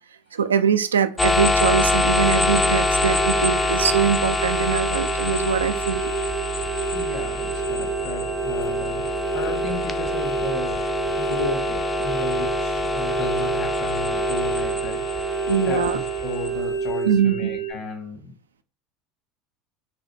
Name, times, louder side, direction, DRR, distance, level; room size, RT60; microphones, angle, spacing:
voice 1, 0.3-6.1 15.5-16.0 17.1-17.5, right 7 dB, 85° right, 0.3 m, -22 dB
sound 1, 1.2-16.9, left 3 dB, 15° left, 0.4 m, -25 dB
sound 2, 2.2-17.7, right 6 dB, 85° left, 1.4 m, -29 dB
voice 2, 6.9-9.0 9.3-10.8 11.2-18.3, left 3 dB, 60° left, 1.4 m, -34 dB
4.0 x 2.1 x 3.2 m
hypercardioid pair, 75°, 0 cm